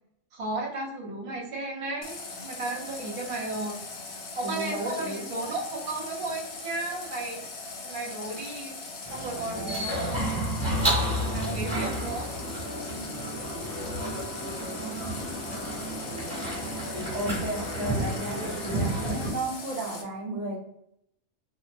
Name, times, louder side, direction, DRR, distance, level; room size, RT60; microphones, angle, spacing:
voice 1, 0.3-2.2 2.4-3.8 4.4-7.4 7.8-8.8 9.1-10.2 11.3-12.3, right 2 dB, 35° right, -4 dB, 0.6 m, -34 dB
Water tap faucet, 2.0-20.0, left 3 dB, 60° left, 0.7 m, -40 dB
voice 2, 4.4-5.3 9.3-9.9 17.1-20.6, right 1 dB, 70° right, 0 dB, 0.9 m, -34 dB
sound 1, 9.0-19.3, right 1 dB, 20° right, 1.3 m, -31 dB
2.9 x 2.1 x 2.4 m, 0.77 s
omnidirectional pair, 1.3 m